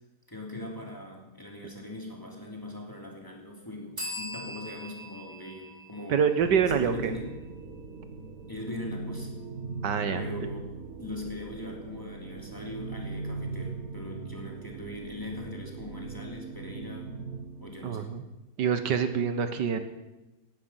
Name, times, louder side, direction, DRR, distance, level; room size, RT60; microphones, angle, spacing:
voice 1, 0.3-6.3 6.7-7.4 8.5-9.3 10.1-10.7 11.0-17.2 17.6-18.1, left 1 dB, 10° left, 0 dB, 2.8 m, -40 dB
sound 1, 4.0-7.5, equal, 25° right, 3.1 m, -42 dB
voice 2, 6.1-7.1 9.8-10.2 17.8-18.2 18.6-19.8, right 7 dB, 85° right, 9 dB, 1.8 m, -26 dB
sound 2, 6.4-18.4, right 4 dB, 60° right, 1.6 m, -40 dB
18.5 x 11.5 x 5.8 m, 1.0 s
omnidirectional pair, 1.8 m